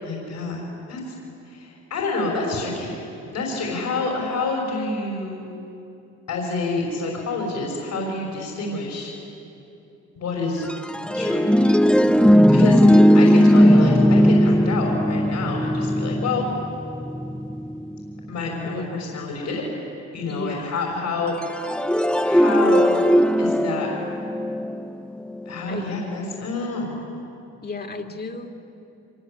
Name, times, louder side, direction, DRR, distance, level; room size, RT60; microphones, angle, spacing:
voice 1, 0.0-1.1 1.4-5.4 6.3-9.1 10.1-10.7 11.1-11.5 12.4-16.4 18.3-19.6 20.1-21.7 22.2-23.1 23.4-23.9 25.5-27.0, left 3 dB, 70° left, -2 dB, 6.0 m, -28 dB
sound 1, 10.6-18.3 21.4-25.5, equal, 5° left, 0.9 m, -18 dB
voice 2, 20.3-20.7 25.7-26.0 27.6-28.5, left 3 dB, 35° left, 3 dB, 2.5 m, -33 dB
25.0 x 24.0 x 8.6 m, 2.7 s
cardioid pair, 90°, 30 cm